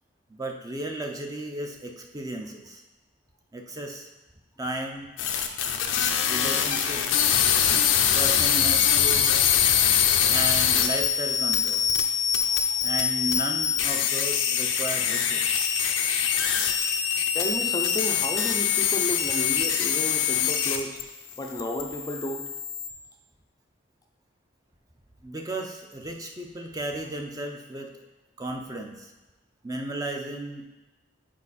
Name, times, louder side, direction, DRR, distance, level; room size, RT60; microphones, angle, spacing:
voice 1, 0.3-2.8 3.5-4.1 4.6-5.1 6.3-7.3 8.1-9.3 10.3-11.9 12.8-15.7 25.2-27.9 28.4-29.1 29.6-30.7, right 1 dB, 20° right, 2 dB, 0.6 m, -34 dB
sound 1, 5.2-21.0 21.3-22.9, left 8 dB, 85° left, 0.6 m, -24 dB
voice 2, 12.4-12.9 16.4-16.6 17.3-21.0 21.4-22.5, left 1 dB, 20° left, 2 dB, 0.5 m, -33 dB
7.5 x 4.4 x 4.2 m, 1.1 s
head